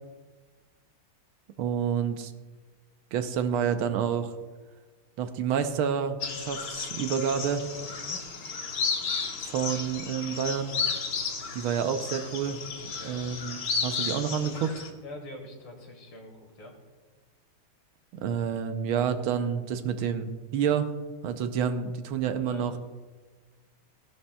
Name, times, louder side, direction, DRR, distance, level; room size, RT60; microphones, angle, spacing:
voice 1, 1.6-2.3 3.1-4.3 5.2-7.6 9.4-10.7 11.5-12.6 13.0-14.8 18.2-20.9 21.2-22.7, right 7 dB, 75° right, 8 dB, 1.5 m, -29 dB
sound 1, 6.2-14.9, left 5 dB, 55° left, 1.6 m, -33 dB
voice 2, 7.9-8.2 12.9-13.3 15.0-16.7 22.4-22.8, left 2 dB, 70° left, 2 dB, 2.6 m, -45 dB
16.0 x 11.0 x 2.3 m, 1.4 s
omnidirectional pair, 2.4 m